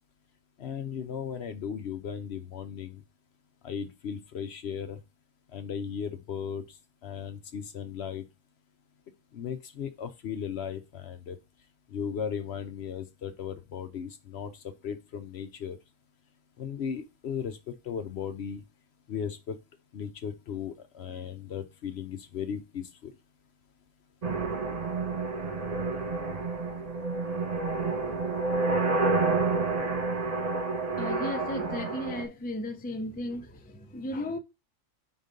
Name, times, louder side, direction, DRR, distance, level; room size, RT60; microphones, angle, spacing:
voice 1, 0.6-3.0 3.6-5.0 5.5-6.8 7.0-8.2 9.3-11.4 11.9-14.5 14.8-15.8 16.6-18.6 19.1-19.6 19.9-23.1, left 7 dB, 60° left, 0.8 m, -36 dB
sound 1, 24.2-32.2, right 3 dB, 30° right, 1.0 m, -29 dB
voice 2, 31.0-34.4, left 1 dB, 10° left, 0.4 m, -35 dB
5.2 x 3.9 x 5.1 m
omnidirectional pair, 1.4 m